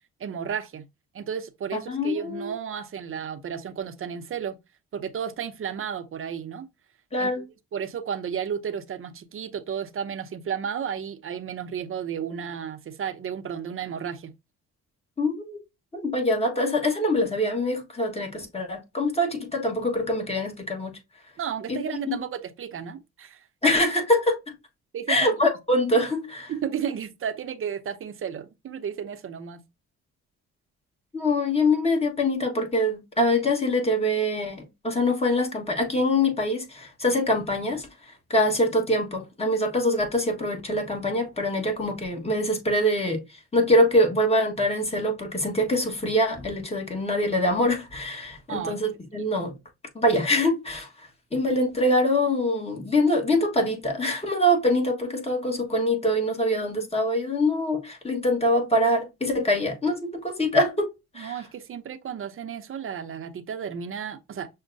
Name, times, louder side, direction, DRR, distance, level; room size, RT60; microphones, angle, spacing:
voice 1, 0.2-0.8 1.1-4.6 4.9-6.7 7.2-7.5 7.7-14.3 21.4-23.5 24.9-25.3 26.5-29.6 48.5-48.8 61.2-64.5, right 8 dB, 45° right, 0.6 m, -33 dB
voice 2, 1.9-2.5 7.1-7.4 15.2-15.6 15.9-20.9 21.7-22.2 23.6-24.4 25.1-26.5 31.1-37.9 38.3-43.2 43.5-49.5 49.9-50.9 51.3-61.4, left 1 dB, 20° left, 1.3 m, -24 dB
6.2 x 2.1 x 2.5 m
cardioid pair, 90°, 30 cm